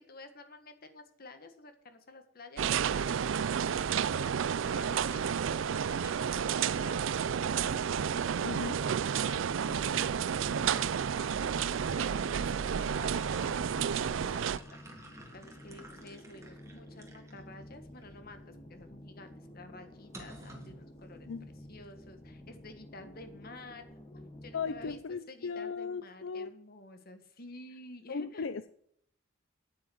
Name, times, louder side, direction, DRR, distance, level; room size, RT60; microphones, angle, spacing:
voice 1, 0.1-2.7 3.1-7.7 8.3-13.6 13.9-14.6 14.9-15.0 15.3-21.3 21.5-23.8 24.1-28.5, left 2 dB, 50° left, 1.6 m, -51 dB
sound 1, 2.6-14.6, right 7 dB, 75° right, 0.4 m, -31 dB
sound 2, 7.4-25.0, left 1 dB, 30° left, 1.4 m, -51 dB
voice 2, 8.4-8.8 21.3-21.5 24.5-26.5 28.1-28.7, left 5 dB, 75° left, 0.5 m, -37 dB
sound 3, 12.8-17.4 18.0-18.1 20.1-20.8, right 2 dB, 15° right, 2.1 m, -51 dB
9.5 x 8.9 x 7.8 m
head